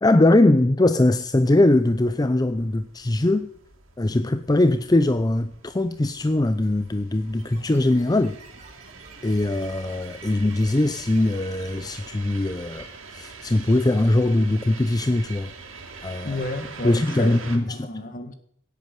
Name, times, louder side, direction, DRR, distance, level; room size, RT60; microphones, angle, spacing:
voice 1, 0.0-3.5 4.0-8.4 9.2-15.5 16.0-16.4 16.8-17.9, left 1 dB, 20° left, 0.5 m, -21 dB
sound 1, 0.8-17.6, right 4 dB, 85° right, 2.9 m, -44 dB
sound 2, 7.4-12.6, right 2 dB, 35° right, 3.2 m, -51 dB
voice 2, 16.2-18.3, left 1 dB, 45° left, 1.9 m, -32 dB
17.0 x 8.4 x 9.3 m
head